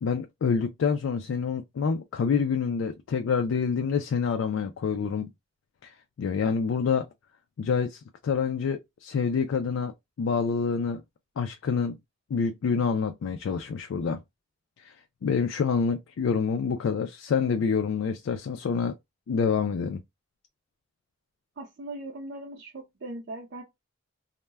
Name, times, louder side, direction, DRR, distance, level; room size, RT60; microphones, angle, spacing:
voice 1, 0.0-5.3 5.8-7.1 7.6-9.9 10.2-11.0 11.4-12.0 12.3-14.2 14.8-14.9 15.2-18.9 19.3-20.0, left 6 dB, 85° left, 0.3 m, -27 dB
voice 2, 21.6-23.6, right 2 dB, 60° right, 0.5 m, -39 dB
2.1 x 2.1 x 3.3 m
head